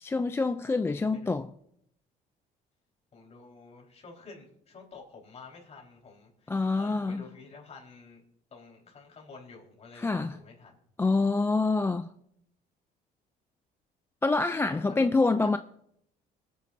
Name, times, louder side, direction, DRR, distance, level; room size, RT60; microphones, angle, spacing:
voice 1, 0.0-1.5 6.5-7.2 10.0-10.4 11.0-12.1 14.2-15.6, left 3 dB, 15° left, 0.3 m, -26 dB
voice 2, 1.1-1.4 3.1-8.2 8.5-10.8 14.7-15.1 15.4-15.6, left 4 dB, 40° left, 4.2 m, -50 dB
26.0 x 9.3 x 2.6 m
cardioid pair, 110°, 17 cm